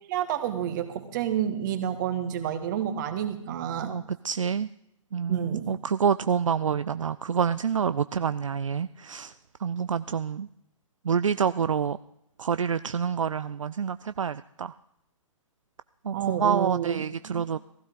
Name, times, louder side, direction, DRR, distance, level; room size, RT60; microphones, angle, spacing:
voice 1, 0.1-3.9 5.3-5.7 16.1-17.5, right 9 dB, 35° right, 9 dB, 1.7 m, -29 dB
voice 2, 3.8-4.7 5.1-9.3 9.6-10.5 11.0-12.0 12.4-14.7 16.0-17.6, right 7 dB, 70° right, 14 dB, 0.4 m, -27 dB
17.0 x 15.5 x 3.9 m, 0.80 s
figure-of-eight pair, 125°, 17 cm